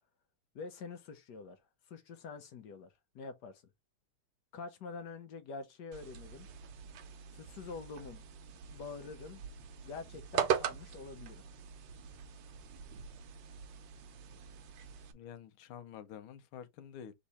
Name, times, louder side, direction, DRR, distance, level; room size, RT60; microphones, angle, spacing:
voice 1, 0.5-1.6 1.9-3.6 4.5-6.5 7.3-8.2 8.7-9.4 9.8-11.4, left 4 dB, 65° left, 1.2 m, -46 dB
sound 1, 5.9-15.1, right 8 dB, 70° right, 1.3 m, -41 dB
voice 2, 15.1-17.1, left 9 dB, 85° left, 1.6 m, -49 dB
3.6 x 3.2 x 4.0 m
omnidirectional pair, 2.3 m